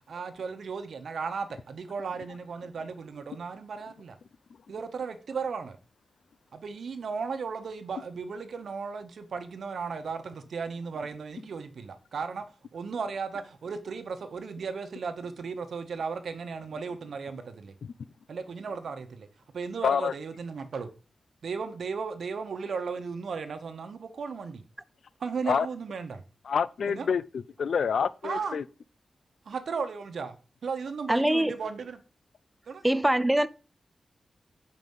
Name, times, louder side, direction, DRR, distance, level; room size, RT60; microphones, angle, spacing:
voice 1, 0.1-4.2 4.7-5.8 6.5-12.5 12.7-17.7 18.3-19.3 19.5-20.9 21.4-24.7 25.2-26.2 26.9-27.1 28.2-28.6 29.5-30.4 30.6-32.0 32.7-32.8, right 5 dB, 75° right, 1.1 m, -35 dB
voice 2, 19.8-20.1 25.5-25.7 26.5-28.6, left 6 dB, 75° left, 0.4 m, -27 dB
voice 3, 31.1-31.5 32.8-33.5, right 1 dB, 5° right, 0.4 m, -23 dB
7.9 x 5.2 x 5.4 m
wide cardioid pair, 145°, 0 cm